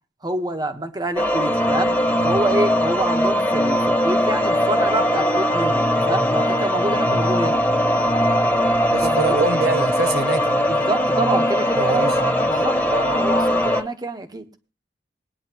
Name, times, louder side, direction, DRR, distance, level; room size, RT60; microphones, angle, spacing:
voice 1, 0.2-2.0 2.2-7.6 9.0-9.5 10.7-14.4, right 1 dB, 20° right, 7 dB, 1.2 m, -26 dB
sound 1, 1.2-13.8, equal, 10° left, 1.4 m, -20 dB
voice 2, 8.9-10.7 11.8-12.2, right 3 dB, 60° right, 8 dB, 0.8 m, -25 dB
20.5 x 9.5 x 3.0 m, 0.32 s
head